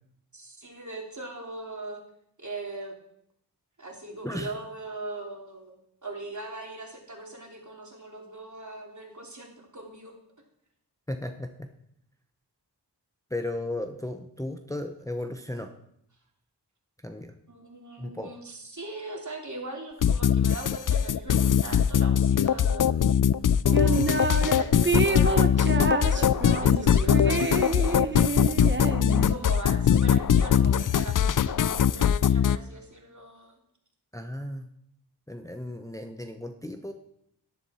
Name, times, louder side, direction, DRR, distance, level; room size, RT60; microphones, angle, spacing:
voice 1, 0.3-2.0 2.4-2.9 3.8-5.7 6.0-10.1 17.5-22.9 23.6-28.3 29.1-33.6, right 2 dB, 45° right, 1 dB, 3.1 m, -40 dB
voice 2, 11.1-11.7 13.3-15.7 17.0-17.3 18.0-18.3 34.1-34.7 35.3-36.9, left 1 dB, 10° left, 6 dB, 0.9 m, -35 dB
sound 1, 20.0-32.6, left 8 dB, 50° left, 0.5 m, -22 dB
sound 2, 23.7-24.6 24.8-29.5, right 3 dB, 25° right, 1.1 m, -28 dB
10.5 x 10.5 x 4.3 m, 0.74 s
cardioid pair, 45°, 42 cm